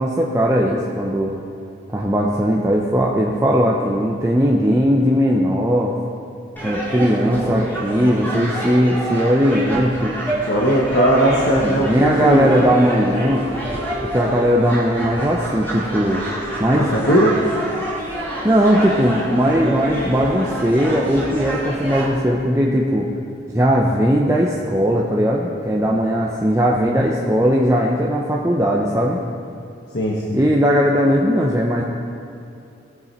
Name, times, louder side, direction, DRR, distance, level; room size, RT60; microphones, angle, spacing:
voice 1, 0.0-1.4 1.9-6.0 6.6-10.1 10.6-10.7 11.6-13.5 14.0-16.2 16.6-16.9 18.4-23.1 23.5-29.2 30.3-31.8, equal, 15° right, -2 dB, 0.7 m, -18 dB
sound 1, 6.6-22.1, right 1 dB, 10° left, 2.0 m, -28 dB
voice 2, 10.5-12.5 16.7-17.4 29.9-30.4, equal, 60° left, -4 dB, 1.2 m, -18 dB
sound 2, 10.7-20.8, right 1 dB, 70° right, 1.6 m, -36 dB
17.5 x 6.9 x 4.4 m, 2.6 s
head